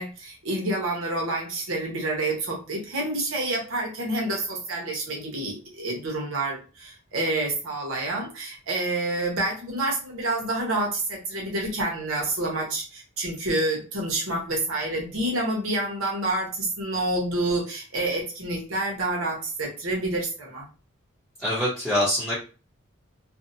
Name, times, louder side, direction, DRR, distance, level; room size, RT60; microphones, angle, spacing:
voice 1, 0.0-20.7, right 2 dB, 85° right, -1 dB, 0.9 m, -28 dB
voice 2, 21.4-22.3, left 1 dB, 5° right, -9 dB, 0.8 m, -24 dB
2.7 x 2.1 x 2.6 m, 0.33 s
head